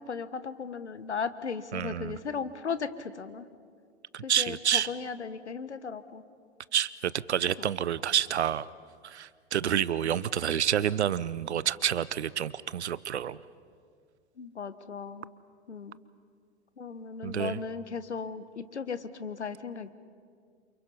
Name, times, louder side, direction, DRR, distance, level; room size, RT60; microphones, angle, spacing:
voice 1, 0.0-3.5 4.2-6.2 14.4-15.3 15.7-16.0 16.8-19.9, left 5 dB, 90° left, 13 dB, 1.3 m, -36 dB
voice 2, 1.7-2.2 4.1-4.9 6.7-8.7 9.0-13.4 17.2-17.6, right 9 dB, 80° right, 19 dB, 0.8 m, -28 dB
29.5 x 28.0 x 5.6 m, 2.2 s
hypercardioid pair, 100°, 33 cm